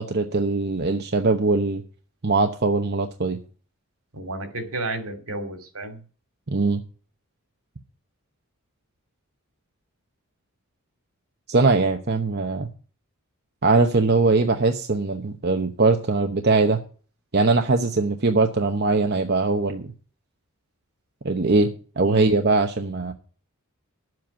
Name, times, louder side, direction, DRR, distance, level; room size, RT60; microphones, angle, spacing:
voice 1, 0.0-1.8 2.2-3.4 6.5-6.8 11.5-12.7 13.6-16.8 17.3-19.9 21.2-21.7 22.0-23.1, right 3 dB, 50° right, 5 dB, 1.0 m, -21 dB
voice 2, 4.1-6.0 22.0-22.3, right 2 dB, 70° right, 7 dB, 2.7 m, -32 dB
11.0 x 7.8 x 7.0 m, 0.39 s
head